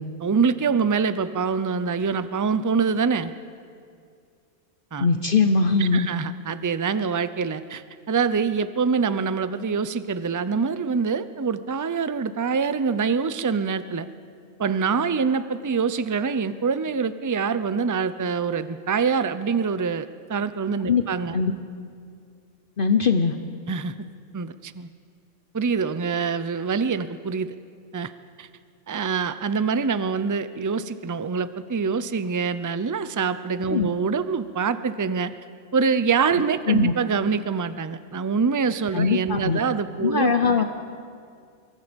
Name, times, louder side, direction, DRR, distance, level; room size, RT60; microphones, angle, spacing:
voice 1, 0.2-3.3 4.9-5.1 5.8-14.1 14.6-21.4 23.7-23.9 24.3-24.9 25.5-27.5 27.9-28.1 28.4-28.5 28.9-35.3 35.7-40.3, right 5 dB, 30° right, 13 dB, 0.3 m, -25 dB
voice 2, 5.0-6.1 20.9-21.0 21.3-21.5 22.8-23.4 33.7-33.9 36.7-36.9 38.9-39.6 40.0-40.6, left 5 dB, 45° left, 7 dB, 1.0 m, -21 dB
25.0 x 23.0 x 5.3 m, 2.2 s
omnidirectional pair, 1.3 m